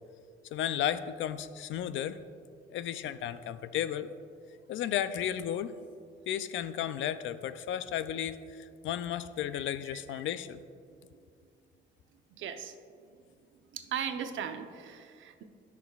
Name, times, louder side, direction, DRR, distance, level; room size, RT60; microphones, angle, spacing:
voice 1, 0.5-2.2 2.7-4.1 4.7-5.8 6.3-10.6, left 10 dB, 75° left, 13 dB, 0.5 m, -34 dB
voice 2, 12.3-12.7 13.7-15.4, right 8 dB, 75° right, 7 dB, 0.8 m, -38 dB
17.5 x 6.0 x 2.4 m, 2.3 s
cardioid pair, 90°, 20 cm